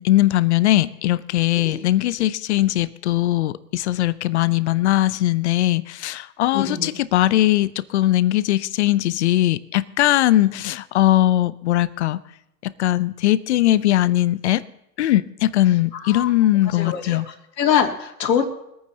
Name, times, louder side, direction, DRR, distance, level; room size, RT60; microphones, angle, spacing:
voice 1, 0.0-12.2 12.6-14.6 15.0-17.3, left 14 dB, 45° left, 16 dB, 0.6 m, -20 dB
voice 2, 6.5-7.0 15.9-16.3 16.7-18.5, left 8 dB, 85° left, 1 dB, 2.8 m, -24 dB
25.0 x 9.2 x 2.8 m, 0.82 s
hypercardioid pair, 145°, 48 cm